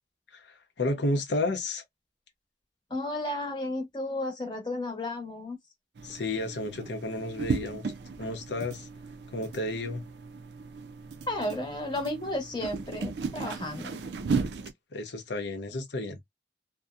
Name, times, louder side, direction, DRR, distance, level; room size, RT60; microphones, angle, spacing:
voice 1, 0.3-1.8 6.0-7.9 8.2-8.9 9.3-10.0 14.9-16.2, left 2 dB, 85° left, 0.7 m, -32 dB
voice 2, 2.9-5.6 11.3-14.0, left 1 dB, 25° left, 0.9 m, -33 dB
sound 1, 6.0-14.7, right 4 dB, 80° right, 0.4 m, -36 dB
2.7 x 2.1 x 2.4 m
head